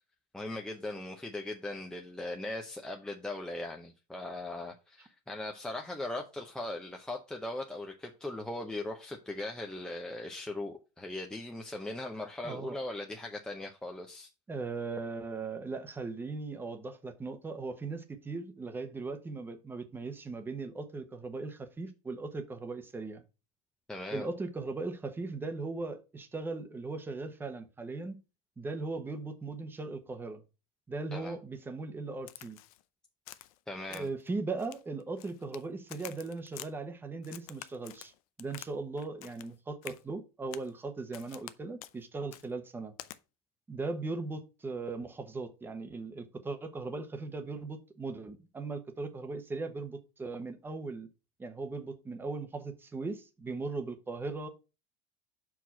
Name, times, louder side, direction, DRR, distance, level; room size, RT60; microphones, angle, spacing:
voice 1, 0.3-14.3 23.9-24.3 31.1-31.3 33.7-34.1, left 2 dB, 5° left, 0.7 m, -39 dB
voice 2, 12.4-12.8 14.5-23.2 24.1-28.2 28.6-30.4 30.9-32.6 33.9-38.1 38.4-42.9 43.7-51.1 51.4-54.5, right 3 dB, 10° right, 1.0 m, -38 dB
Crack, 32.3-32.8 33.3-33.6 33.9-34.3 34.6-35.6 35.9-36.7 37.2-38.7 39.0-39.5 39.8-40.0 40.5-40.7 41.1-41.5 41.8-42.0 42.3-42.5 43.0-43.2, left 15 dB, 85° left, 0.6 m, -47 dB
5.9 x 4.8 x 5.6 m
supercardioid pair, 145°, 18 cm